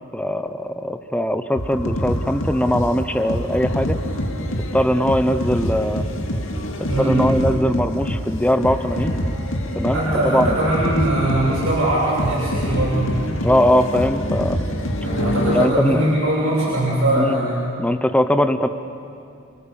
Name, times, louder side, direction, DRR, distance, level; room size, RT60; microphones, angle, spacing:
voice 1, 0.1-4.0 4.7-6.0 7.0-9.2 9.8-10.5 13.4-14.6 15.5-16.0 17.1-17.4 17.8-18.7, left 1 dB, 5° left, 9 dB, 0.9 m, -20 dB
sound 1, 1.6-15.7, equal, 65° left, 2.4 m, -25 dB
voice 2, 6.7-7.2 9.9-13.2 15.0-17.6, right 1 dB, 75° right, -8 dB, 7.1 m, -21 dB
29.5 x 24.0 x 7.1 m, 2.5 s
head